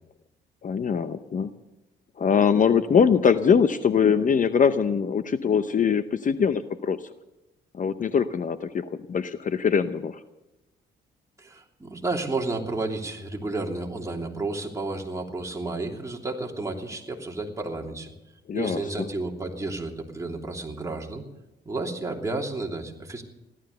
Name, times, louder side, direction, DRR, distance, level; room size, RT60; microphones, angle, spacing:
voice 1, 0.6-1.5 2.2-7.0 7.7-10.2 18.5-19.1, left 6 dB, 40° left, 11 dB, 0.8 m, -22 dB
voice 2, 11.4-18.1 18.5-21.2 21.6-23.2, right 2 dB, 15° right, 1 dB, 3.0 m, -31 dB
16.0 x 12.5 x 6.7 m, 0.98 s
cardioid pair, 90°, 20 cm